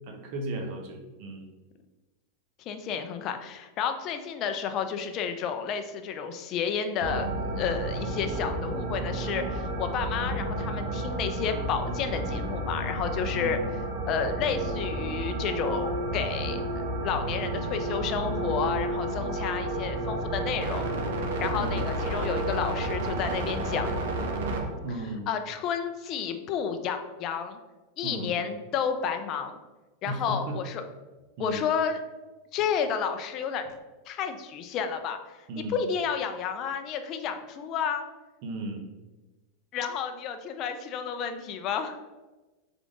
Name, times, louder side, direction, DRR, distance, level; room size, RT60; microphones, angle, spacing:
voice 1, 0.1-1.5 13.3-13.7 21.5-21.9 24.8-25.3 28.0-28.3 30.0-30.6 31.4-31.6 35.5-35.8 38.4-38.8, right 2 dB, 45° right, 3 dB, 0.8 m, -35 dB
voice 2, 2.7-7.3 7.6-13.6 14.1-16.6 17.0-20.8 21.4-23.9 25.3-27.6 28.0-29.6 30.0-30.8 31.4-32.0 32.5-33.6 34.1-35.2 35.7-38.0 39.7-42.0, left 7 dB, 30° left, 7 dB, 0.4 m, -31 dB
sound 1, 7.0-24.7, right 1 dB, 75° right, 0.8 m, -31 dB
3.7 x 3.7 x 3.6 m, 1.2 s
supercardioid pair, 165°, 0 cm